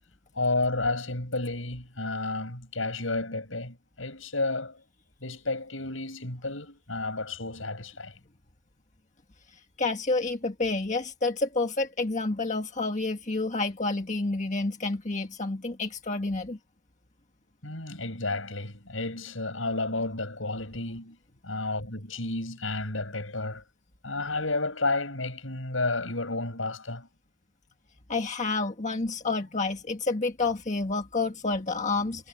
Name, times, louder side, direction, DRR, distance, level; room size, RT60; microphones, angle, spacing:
voice 1, 0.4-4.8 5.2-8.1 17.6-21.2 21.4-23.6 24.0-27.1, left 2 dB, 85° left, 7.1 m, -31 dB
voice 2, 9.8-16.6 28.1-32.3, left 3 dB, 40° left, 1.6 m, -29 dB
head